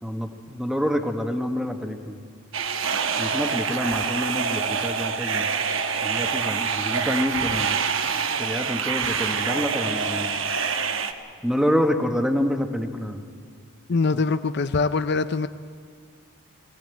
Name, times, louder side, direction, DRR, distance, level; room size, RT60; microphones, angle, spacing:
voice 1, 0.0-2.2 3.2-5.5 6.0-7.8 8.4-10.4 11.4-13.2 14.1-14.2, equal, ahead, 5 dB, 1.2 m, -27 dB
sound 1, 2.5-11.1, right 6 dB, 70° right, 1.1 m, -26 dB
voice 2, 13.9-15.5, left 4 dB, 50° left, 11 dB, 0.5 m, -23 dB
20.5 x 16.0 x 9.3 m, 2.1 s
head